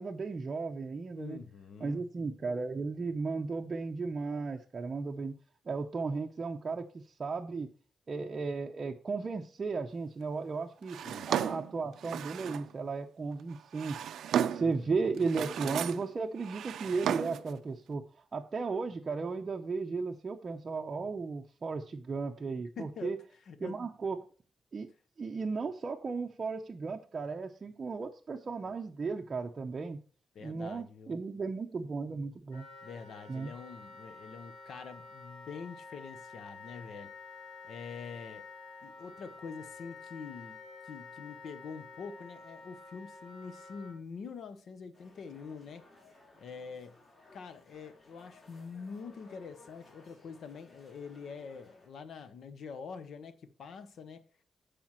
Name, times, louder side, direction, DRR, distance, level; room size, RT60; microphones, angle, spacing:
voice 1, 0.0-1.4 1.8-5.4 5.7-7.7 8.1-11.0 11.3-14.1 14.5-18.0 18.3-23.2 23.6-24.2 24.7-24.9 25.2-30.0 30.4-32.6 33.3-33.5, right 4 dB, 30° right, 0.6 m, -35 dB
voice 2, 1.1-2.0 11.0-11.3 14.6-15.1 22.8-23.2 23.4-23.8 30.3-31.2 32.8-37.1 37.6-38.5 38.8-40.6 40.8-45.9 46.4-47.0 47.3-54.2, left 5 dB, 60° left, 0.8 m, -45 dB
Drawer open or close, 10.9-12.7 13.5-14.8 15.2-16.1 16.4-17.5, right 9 dB, 85° right, 0.4 m, -34 dB
Wind instrument woodwind instrument, 32.5-43.9, left 4 dB, 85° left, 3.2 m, -50 dB
sound 1, 44.9-51.9, left 2 dB, 30° left, 4.3 m, -59 dB
14.5 x 5.0 x 3.0 m
wide cardioid pair, 160°, 0 cm